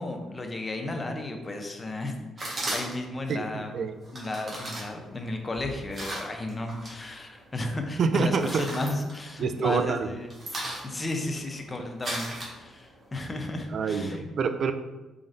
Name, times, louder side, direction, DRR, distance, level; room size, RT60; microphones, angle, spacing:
voice 1, 0.0-3.7 4.1-10.3 10.8-14.2, left 2 dB, 25° left, 4 dB, 0.6 m, -34 dB
sound 1, 2.4-3.2 4.0-7.0 7.3-7.9 8.2-9.7 10.0-13.0, right 1 dB, 40° right, 1.3 m, -37 dB
voice 2, 3.3-4.0 8.0-8.7 9.4-10.1 13.7-14.7, right 5 dB, 55° right, 9 dB, 0.3 m, -27 dB
4.1 x 3.8 x 2.6 m, 1.1 s
cardioid pair, 90°, 0 cm